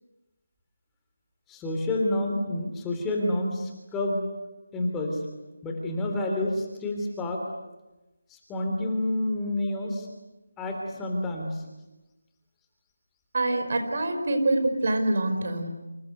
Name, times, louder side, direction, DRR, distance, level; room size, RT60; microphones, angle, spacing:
voice 1, 1.5-4.2 4.7-5.2 5.6-7.4 8.3-10.1 10.6-11.6, left 1 dB, 10° left, 1 dB, 3.4 m, -29 dB
voice 2, 13.3-15.9, right 2 dB, 50° right, 6 dB, 5.0 m, -25 dB
28.5 x 27.5 x 6.8 m, 1.1 s
figure-of-eight pair, 160°, 0 cm